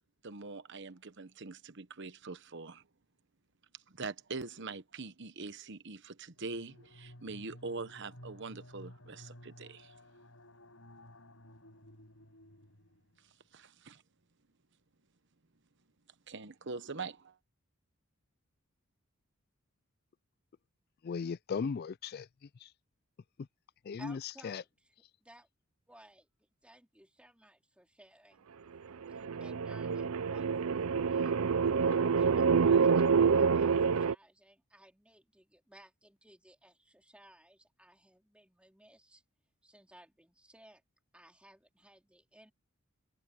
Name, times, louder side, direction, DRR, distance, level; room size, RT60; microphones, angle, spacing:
voice 1, 0.2-2.8 3.9-9.9 13.5-14.0 16.3-17.4, right 3 dB, 55° right, 1.1 m, -43 dB
sound 1, 6.4-13.3, left 1 dB, 65° left, 7.2 m, -55 dB
voice 2, 21.0-22.3 22.6-22.7 23.8-24.6, left 5 dB, 45° left, 0.3 m, -37 dB
voice 3, 24.0-24.9 25.2-25.5 25.9-26.3 26.6-28.5 29.1-31.6 31.9-39.2 39.6-40.8 41.1-42.5, right 1 dB, 5° right, 3.7 m, -59 dB
sound 2, 29.0-34.1, right 5 dB, 70° right, 0.5 m, -27 dB
head